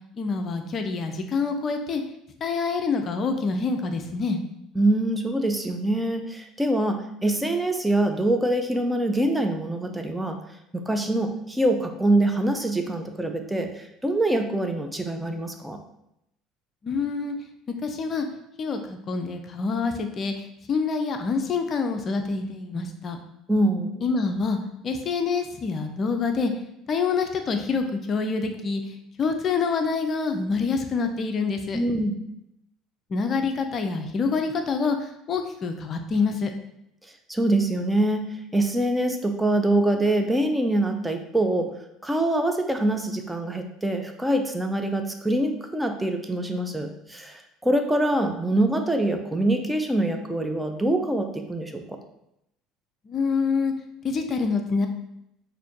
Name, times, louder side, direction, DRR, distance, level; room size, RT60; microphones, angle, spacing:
voice 1, 0.2-2.0 2.4-4.4 16.8-17.3 17.8-18.3 18.6-23.2 24.0-24.6 24.8-26.5 26.9-31.8 33.1-36.5 53.1-53.7 54.0-54.9, left 4 dB, 40° left, 6 dB, 0.5 m, -26 dB
voice 2, 4.7-10.4 10.7-15.8 23.5-24.0 31.7-32.2 37.3-38.2 38.5-41.7 42.0-51.8, right 1 dB, 10° right, 5 dB, 0.5 m, -24 dB
6.2 x 2.6 x 2.8 m, 0.80 s
figure-of-eight pair, 60°, 0 cm